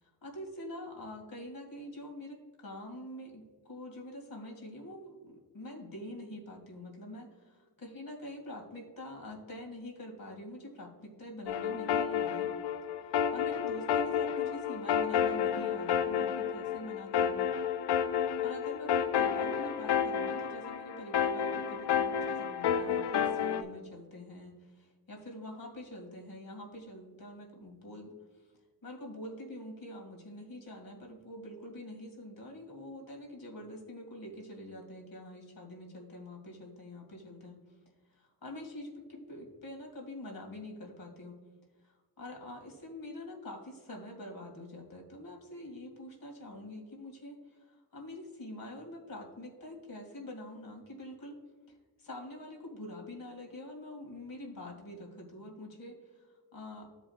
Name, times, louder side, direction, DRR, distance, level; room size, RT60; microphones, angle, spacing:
voice 1, 0.0-12.5 13.0-17.5 18.4-28.1 28.8-37.6 38.1-41.4 41.8-51.4 51.7-56.9, left 1 dB, 55° left, 1 dB, 2.3 m, -45 dB
sound 1, 11.5-23.6, left 8 dB, 75° left, 0.6 m, -31 dB
13.0 x 5.1 x 2.4 m, 1.4 s
cardioid pair, 55°, 41 cm